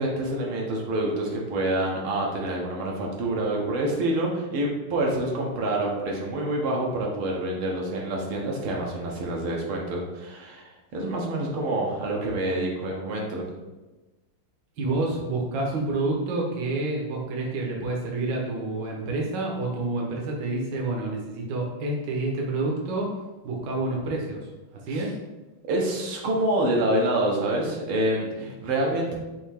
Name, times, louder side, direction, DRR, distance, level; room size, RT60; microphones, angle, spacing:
voice 1, 0.0-13.5 24.9-25.1 25.7-29.1, right 1 dB, 80° right, -2 dB, 1.7 m, -27 dB
voice 2, 14.8-23.2 23.4-24.5 24.7-25.2, right 2 dB, 65° right, -1 dB, 1.4 m, -28 dB
5.6 x 2.7 x 3.4 m, 1.1 s
omnidirectional pair, 2.3 m